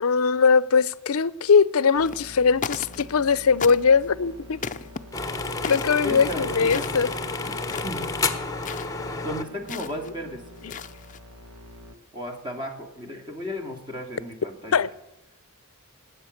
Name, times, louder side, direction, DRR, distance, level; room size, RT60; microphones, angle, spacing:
voice 1, 0.0-4.6 5.7-7.1 14.7-14.9, left 5 dB, 75° left, 19 dB, 0.6 m, -20 dB
sound 1, 2.0-2.3 2.6-3.3 3.6-4.1 4.6-5.0 5.6-6.0 6.6-7.2 7.6-8.0 8.6-8.9 9.7-10.1 10.6-11.2, left 6 dB, 35° left, 0.6 m, -35 dB
sound 2, 2.0-11.9, equal, 75° right, 1.7 m, -46 dB
sound 3, 5.1-9.4, left 3 dB, 15° left, 1.0 m, -30 dB
voice 2, 6.0-7.0 7.8-8.1 9.2-10.8 12.1-14.8, left 1 dB, 20° right, 4 dB, 2.4 m, -34 dB
19.5 x 8.6 x 6.5 m, 0.91 s
head